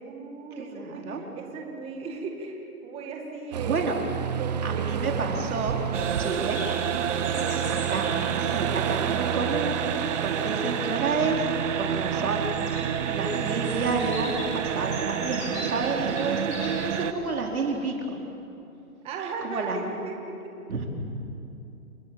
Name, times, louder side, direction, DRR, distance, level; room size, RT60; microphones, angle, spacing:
voice 1, 0.0-3.9 4.3-5.0 7.0-7.6 19.0-20.5, right 4 dB, 15° right, 2 dB, 2.0 m, -37 dB
voice 2, 0.6-1.2 3.6-4.0 4.6-6.6 7.2-7.4 7.7-8.0 8.3-9.9 10.2-11.4 11.7-12.5 13.1-18.2 19.4-19.8 20.7-20.9, right 4 dB, 75° right, 1 dB, 4.6 m, -30 dB
Aircraft, 3.5-15.0, right 9 dB, 30° right, 0.7 m, -32 dB
Bird vocalization bird call bird song, 5.1-17.8, left 2 dB, 15° left, 5.4 m, -43 dB
sound 1, 5.9-17.1, right 8 dB, 55° right, 1.3 m, -29 dB
29.5 x 20.5 x 7.4 m, 2.8 s
hypercardioid pair, 155°, 43 cm